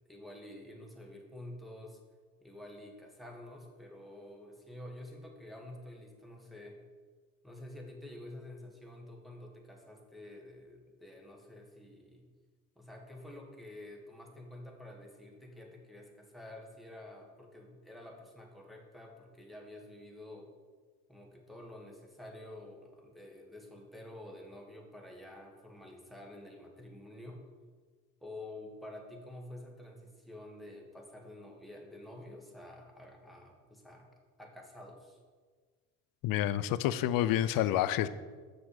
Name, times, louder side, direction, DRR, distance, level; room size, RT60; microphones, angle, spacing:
voice 1, 0.1-2.0 2.4-6.8 7.4-12.3 12.7-20.5 21.1-27.4 28.2-34.1 34.4-35.2, left 1 dB, ahead, 0 dB, 1.6 m, -49 dB
voice 2, 36.2-38.1, left 12 dB, 55° left, 15 dB, 0.5 m, -28 dB
7.0 x 6.0 x 4.9 m, 1.5 s
supercardioid pair, 85°, 42 cm